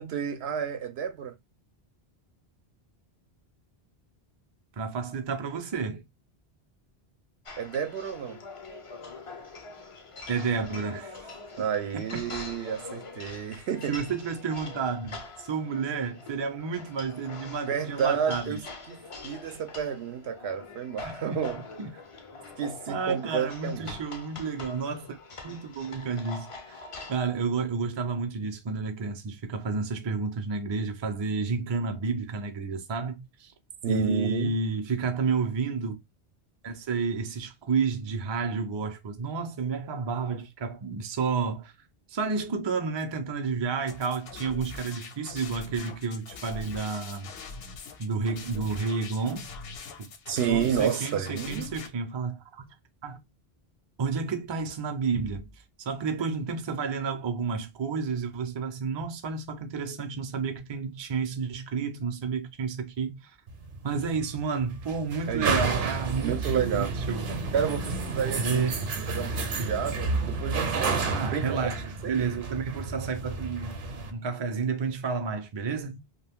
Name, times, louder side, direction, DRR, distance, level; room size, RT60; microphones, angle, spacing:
voice 1, 0.0-1.3 7.6-8.4 11.6-13.9 17.7-18.6 18.9-21.6 22.6-24.0 33.8-34.5 50.3-51.7 65.3-65.6 66.2-66.9 67.5-68.7 69.1-71.7 72.0-72.2, right 8 dB, 80° right, 0.8 m, -30 dB
voice 2, 4.8-6.0 10.3-11.3 11.9-12.2 13.9-18.6 21.0-21.4 21.8-21.9 22.9-25.2 25.4-26.8 27.1-33.5 33.9-36.0 36.6-41.7 42.1-47.3 48.0-49.5 50.0-50.1 50.5-52.7 53.0-53.2 54.0-55.5 55.8-63.3 63.8-67.4 68.4-68.9 69.6-69.7 71.1-73.8 74.1-76.0, right 5 dB, 35° right, 0.4 m, -31 dB
sound 1, 7.5-27.2, left 3 dB, 40° left, 0.5 m, -44 dB
sound 2, 43.9-51.9, left 4 dB, 70° left, 0.8 m, -43 dB
sound 3, 63.5-74.1, right 4 dB, 60° right, 0.8 m, -31 dB
2.5 x 2.2 x 3.4 m
omnidirectional pair, 1.1 m